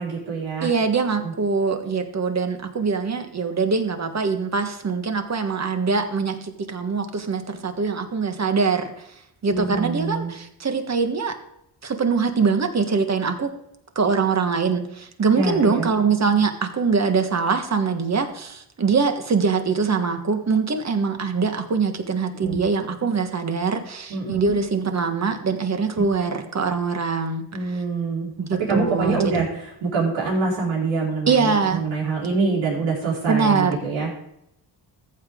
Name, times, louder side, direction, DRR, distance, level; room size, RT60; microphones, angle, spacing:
voice 1, 0.0-0.7 1.2-1.3 9.4-10.3 15.3-15.9 22.3-22.6 24.1-24.5 25.9-26.0 27.5-28.3 28.6-34.1, right 3 dB, 80° right, -4 dB, 4.6 m, -25 dB
voice 2, 0.6-8.9 9.4-11.4 11.8-13.5 13.9-27.4 27.7-27.8 28.4-29.3 31.3-31.8 33.3-33.8, right 5 dB, 35° right, 6 dB, 1.6 m, -23 dB
14.5 x 8.3 x 3.8 m, 0.79 s
cardioid pair, 90°, 45 cm